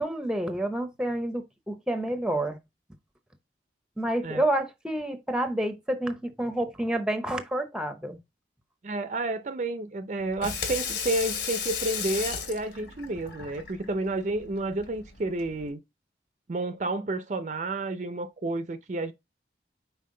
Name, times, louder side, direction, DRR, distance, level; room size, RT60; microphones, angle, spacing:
voice 1, 0.0-2.6 4.0-8.2, right 1 dB, 5° right, 0.7 m, -29 dB
voice 2, 8.8-15.8 16.5-19.1, right 2 dB, 40° right, 0.5 m, -30 dB
Water tap faucet / Sink (filling or washing), 10.2-15.7, left 6 dB, 80° left, 2.4 m, -35 dB
5.6 x 4.5 x 3.8 m
head